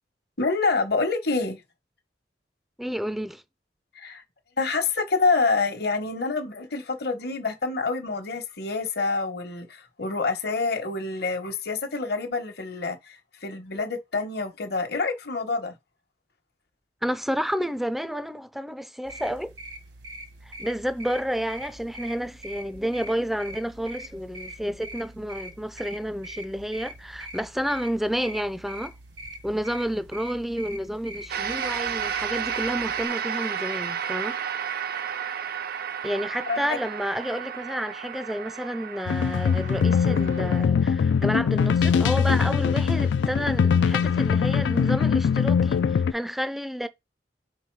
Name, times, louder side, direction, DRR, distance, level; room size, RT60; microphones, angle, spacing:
voice 1, 0.4-1.6 4.0-4.2 4.6-15.7 36.5-36.8, left 4 dB, 60° left, 1.2 m, -27 dB
voice 2, 2.8-3.4 17.0-19.5 20.5-28.9 29.4-34.4 36.0-46.9, equal, ahead, 0.4 m, -30 dB
sound 1, 19.0-33.1, right 1 dB, 75° right, 1.3 m, -42 dB
sound 2, 31.3-40.6, right 8 dB, 55° right, 0.5 m, -32 dB
sound 3, 39.1-46.1, left 6 dB, 80° left, 0.3 m, -22 dB
5.6 x 3.9 x 4.6 m
head